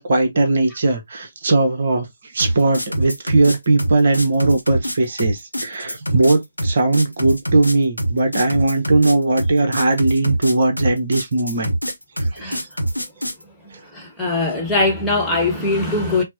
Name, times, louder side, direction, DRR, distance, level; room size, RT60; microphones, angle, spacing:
voice 1, 0.0-2.1 2.3-11.8 12.2-12.7, right 2 dB, 50° right, 0.9 m, -19 dB
sound 1, 2.4-13.4, right 1 dB, 90° left, 0.8 m, -24 dB
voice 2, 13.7-16.2, left 2 dB, ahead, 1.2 m, -21 dB
5.8 x 2.1 x 2.7 m
figure-of-eight pair, 140°, 0 cm